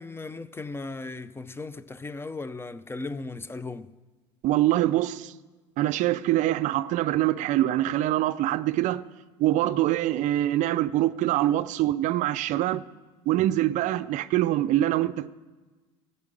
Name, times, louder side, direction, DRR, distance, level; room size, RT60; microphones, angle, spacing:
voice 1, 0.0-3.9, left 3 dB, 15° left, 0.5 m, -37 dB
voice 2, 4.4-5.3 5.8-9.0 9.4-12.8 13.3-15.3, right 14 dB, 55° right, 0.4 m, -24 dB
13.5 x 5.5 x 8.9 m
supercardioid pair, 90°, 15 cm